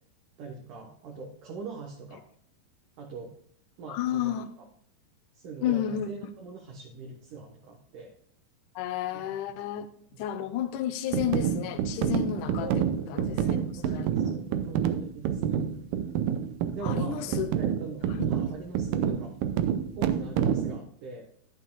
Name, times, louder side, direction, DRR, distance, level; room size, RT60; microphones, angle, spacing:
voice 1, 0.4-2.2 3.0-3.4 3.8-4.7 5.3-8.1 9.1-9.3 10.1-10.5 12.6-12.8 13.1-15.6 16.7-19.4 20.0-21.3, right 4 dB, 65° right, 1 dB, 2.4 m, -42 dB
voice 2, 3.9-4.5 5.6-6.1 8.8-9.9 10.2-12.7 13.1-13.6 13.8-14.4 16.8-17.5 18.1-18.3 19.1-19.2, left 11 dB, 80° left, 9 dB, 1.8 m, -31 dB
sound 1, 11.1-20.8, right 9 dB, 85° right, 1.8 m, -28 dB
11.0 x 9.6 x 2.3 m, 0.63 s
omnidirectional pair, 4.5 m